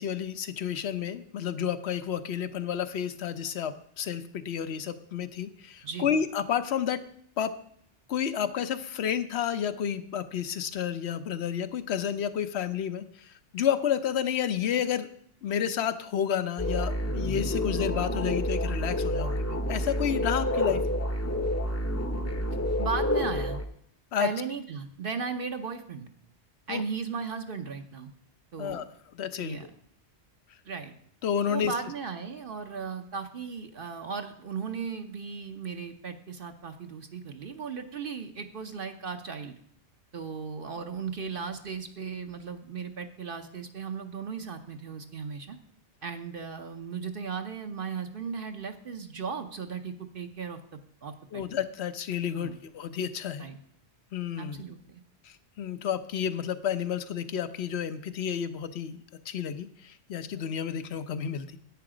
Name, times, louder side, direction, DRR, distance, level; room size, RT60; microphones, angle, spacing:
voice 1, 0.0-7.0 7.4-7.5 8.1-15.1 15.4-21.0 24.1-24.3 26.7-26.8 28.6-28.8 29.1-29.7 31.2-31.7 51.3-53.5 54.1-54.6 55.2-61.6, left 8 dB, 75° left, 12 dB, 1.0 m, -31 dB
sound 1, 16.6-23.7, left 1 dB, 15° left, 0.7 m, -29 dB
voice 2, 22.8-23.6 24.2-26.1 26.7-28.1 28.5-28.9 29.4-29.7 30.6-30.9 31.5-39.6 40.1-45.6 46.0-50.6 51.0-51.4 52.3-52.6 53.4-53.6 54.4-55.0, right 5 dB, 55° right, 6 dB, 0.9 m, -36 dB
10.5 x 8.6 x 5.0 m, 0.65 s
omnidirectional pair, 1.1 m